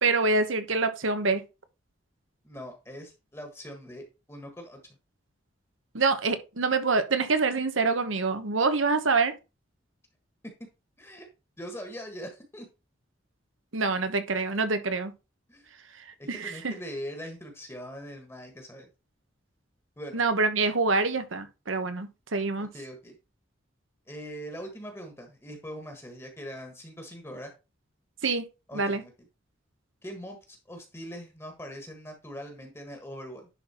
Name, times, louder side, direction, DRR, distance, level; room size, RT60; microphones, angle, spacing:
voice 1, 0.0-1.4 5.9-9.3 13.7-15.1 16.3-16.7 20.1-22.7 28.2-28.5 28.7-29.0, right 3 dB, 85° right, 1.1 m, -26 dB
voice 2, 2.4-4.8 11.0-11.3 11.6-12.7 15.5-15.7 16.2-18.9 20.0-20.2 22.6-23.2 24.1-27.5 28.7-29.1 30.0-33.5, equal, 15° left, 1.5 m, -41 dB
10.5 x 4.0 x 4.3 m
head